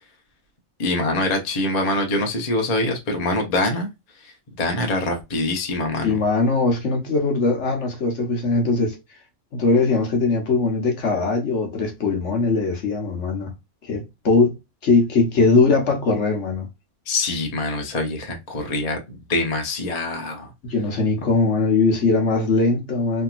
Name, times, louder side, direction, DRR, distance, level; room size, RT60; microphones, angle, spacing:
voice 1, 0.8-3.9 4.2-6.2 17.1-20.5, left 2 dB, 35° left, 0.8 m, -24 dB
voice 2, 6.0-9.0 9.5-13.5 13.8-14.5 14.8-16.7 20.6-23.2, left 3 dB, 55° left, 1.2 m, -20 dB
3.3 x 2.8 x 2.4 m
omnidirectional pair, 1.5 m